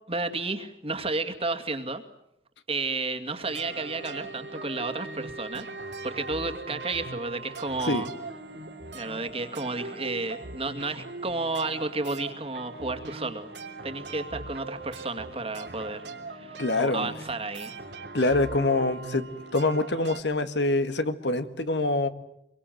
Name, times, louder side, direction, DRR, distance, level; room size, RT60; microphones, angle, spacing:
voice 1, 0.1-2.0 2.7-5.7 6.0-8.1 8.9-13.5 13.8-17.7, right 3 dB, 35° right, 7 dB, 2.2 m, -32 dB
sound 1, 3.4-20.2, right 3 dB, 80° right, 3.4 m, -40 dB
voice 2, 16.6-17.1 18.1-19.3 19.5-22.1, left 2 dB, 85° left, 10 dB, 1.9 m, -25 dB
25.5 x 23.5 x 9.3 m, 0.78 s
head